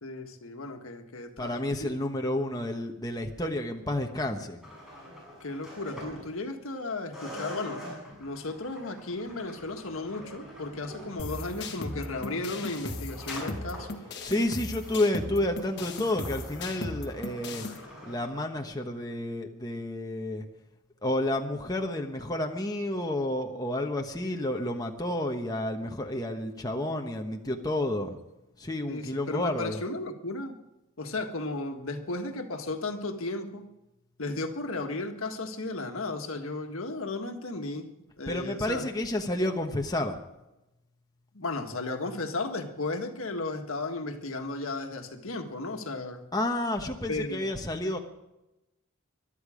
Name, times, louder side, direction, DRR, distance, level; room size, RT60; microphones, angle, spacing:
voice 1, 0.0-1.9 5.4-7.8 8.2-14.0 28.9-30.5 31.0-33.6 34.2-37.9 38.2-38.8 41.3-46.3 47.1-47.5, left 2 dB, 80° left, 5 dB, 1.6 m, -35 dB
voice 2, 1.4-4.6 14.2-17.7 18.0-20.5 21.0-28.2 28.6-29.8 38.3-40.2 46.3-48.0, left 1 dB, 20° left, 2 dB, 1.2 m, -30 dB
sound 1, 4.6-6.8 7.1-18.3, equal, ahead, 7.1 m, -45 dB
sound 2, 11.2-17.8, left 2 dB, 55° left, 1.7 m, -37 dB
22.0 x 12.0 x 5.1 m, 0.95 s
head